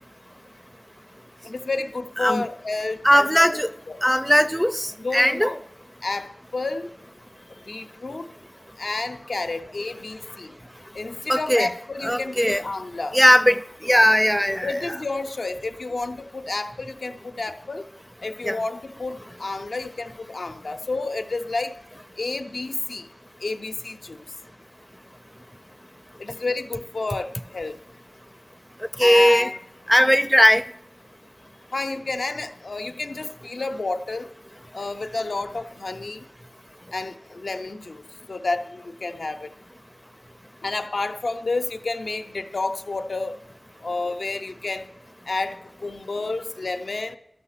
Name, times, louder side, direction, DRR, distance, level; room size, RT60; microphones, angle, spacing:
voice 1, 1.4-3.5 3.9-4.0 5.0-5.6 6.0-6.9 7.6-8.3 8.8-10.5 10.9-13.2 14.6-17.8 18.2-21.8 22.2-23.1 23.4-24.2 26.2-27.7 29.0-29.6 31.7-34.3 34.7-36.2 36.9-38.0 38.3-39.5 40.6-43.4 43.8-44.9 45.3-47.2, left 3 dB, 85° left, 0.6 m, -30 dB
voice 2, 3.0-3.7 4.0-5.5 11.3-11.7 12.0-12.6 13.1-14.7 18.4-18.6 29.0-29.5 29.9-30.6, equal, ahead, 0.4 m, -18 dB
12.5 x 6.5 x 5.6 m
wide cardioid pair, 55°, 0 cm